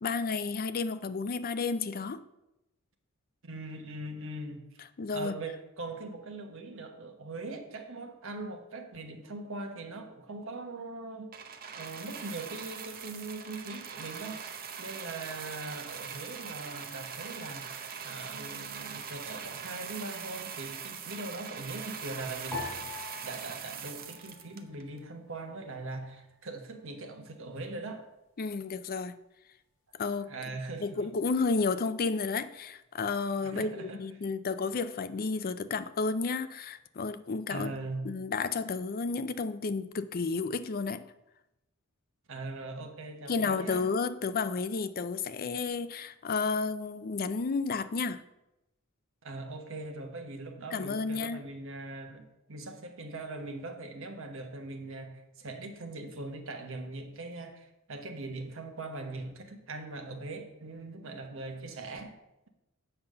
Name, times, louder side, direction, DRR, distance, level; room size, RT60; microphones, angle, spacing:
voice 1, 0.0-2.2 5.0-5.3 28.4-29.2 29.9-30.3 30.8-37.8 38.0-41.1 43.3-48.2 50.7-51.4 61.0-61.1, left 4 dB, 45° left, 0.5 m, -32 dB
voice 2, 3.4-4.6 5.1-11.3 11.8-14.4 14.8-17.7 18.0-22.9 23.2-28.0 30.3-31.1 33.4-34.0 37.5-38.1 42.3-43.8 49.2-62.2, right 2 dB, 65° right, 1.2 m, -41 dB
sound 1, 11.3-25.0 25.8-25.9, right 7 dB, 45° right, 0.8 m, -42 dB
sound 2, 22.5-25.0 25.3-26.2 26.8-27.2, left 4 dB, 10° left, 3.7 m, -44 dB
7.9 x 5.6 x 6.7 m
head